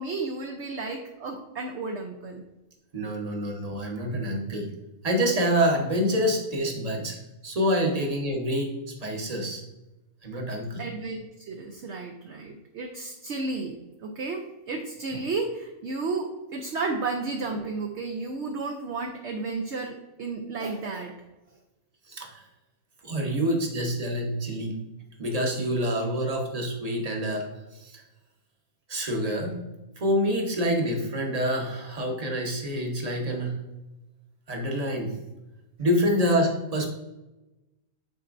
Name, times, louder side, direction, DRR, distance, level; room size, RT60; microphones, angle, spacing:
voice 1, 0.0-2.4 10.8-13.7 14.0-21.1, right 3 dB, 60° right, 2 dB, 0.9 m, -32 dB
voice 2, 2.9-4.7 5.0-7.2 7.4-8.7 9.0-9.6 10.2-10.8 22.1-22.5 23.0-24.8 25.2-28.0 28.9-29.6 30.0-33.6 34.5-35.2 35.8-36.9, equal, 30° right, 1 dB, 1.0 m, -27 dB
9.2 x 4.3 x 2.5 m, 1.0 s
omnidirectional pair, 1.5 m